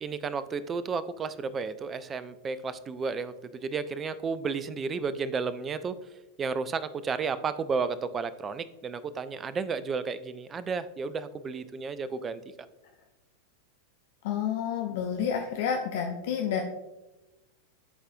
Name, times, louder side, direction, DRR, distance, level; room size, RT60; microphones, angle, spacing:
voice 1, 0.0-6.0 6.4-12.4, right 5 dB, 20° right, 14 dB, 0.3 m, -32 dB
voice 2, 14.2-16.6, left 8 dB, 50° left, 2 dB, 0.6 m, -29 dB
11.0 x 4.0 x 2.6 m, 1.0 s
figure-of-eight pair, 90°, 0 cm